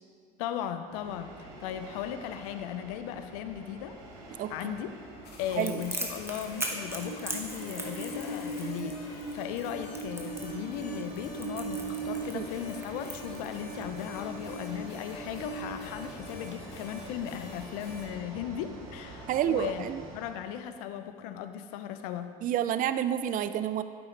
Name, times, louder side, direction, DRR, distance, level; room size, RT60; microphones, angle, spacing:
voice 1, 0.4-3.9 4.5-4.9 5.4-19.9 20.1-22.3, left 10 dB, 80° left, 9 dB, 0.5 m, -37 dB
Train, 0.9-20.4, right 3 dB, 85° right, 2.3 m, -42 dB
voice 2, 4.4-4.7 5.5-5.8 12.3-12.5 19.3-20.0 22.4-23.8, right 10 dB, 45° right, 12 dB, 0.4 m, -29 dB
sound 1, 5.2-18.1, left 2 dB, 60° left, 1.9 m, -48 dB
Crackle, 5.6-13.8, right 1 dB, 15° right, 1.5 m, -39 dB
9.7 x 7.8 x 3.2 m, 2.3 s
hypercardioid pair, 70°, 19 cm